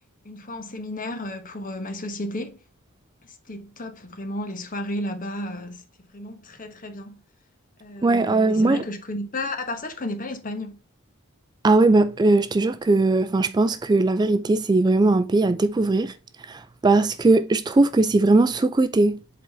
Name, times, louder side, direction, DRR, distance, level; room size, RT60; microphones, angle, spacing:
voice 1, 0.2-2.6 3.5-5.8 6.1-7.2 7.8-10.8, left 1 dB, 40° left, 1.2 m, -33 dB
voice 2, 8.0-8.8 11.6-16.2 16.5-19.2, right 2 dB, 20° right, 0.3 m, -19 dB
7.9 x 4.0 x 3.5 m
head